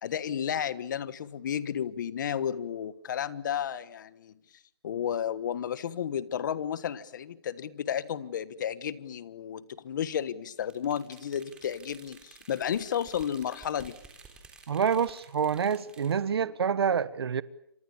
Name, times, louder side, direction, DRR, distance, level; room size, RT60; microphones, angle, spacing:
voice 1, 0.0-4.3 4.8-13.9, left 9 dB, 50° left, 1.4 m, -32 dB
sound 1, 10.6-16.2, right 4 dB, 5° right, 3.5 m, -53 dB
voice 2, 14.7-17.4, right 7 dB, 70° right, 1.2 m, -27 dB
28.5 x 26.5 x 7.2 m
hypercardioid pair, 170°, 13 cm